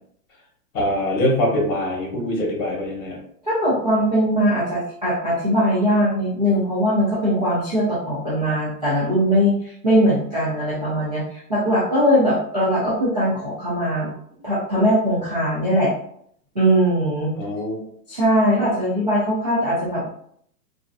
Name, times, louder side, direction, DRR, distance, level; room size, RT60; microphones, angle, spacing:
voice 1, 0.7-3.2 17.4-17.8, left 1 dB, 55° left, -1 dB, 1.4 m, -23 dB
voice 2, 3.4-14.1 14.4-15.9 16.5-17.3 18.1-20.1, equal, 30° right, -9 dB, 0.4 m, -20 dB
3.2 x 2.5 x 2.4 m, 0.67 s
hypercardioid pair, 175°, 48 cm